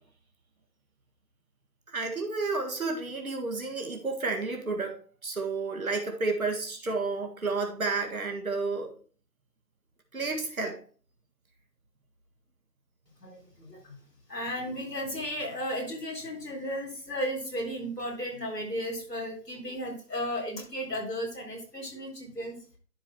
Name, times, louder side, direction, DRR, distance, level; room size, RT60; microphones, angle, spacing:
voice 1, 1.9-8.9 10.1-10.8, right 3 dB, 60° right, 2 dB, 1.8 m, -31 dB
voice 2, 13.2-14.0 14.3-22.6, equal, 80° left, 0 dB, 3.9 m, -34 dB
11.0 x 4.0 x 4.3 m, 0.42 s
figure-of-eight pair, 170°, 48 cm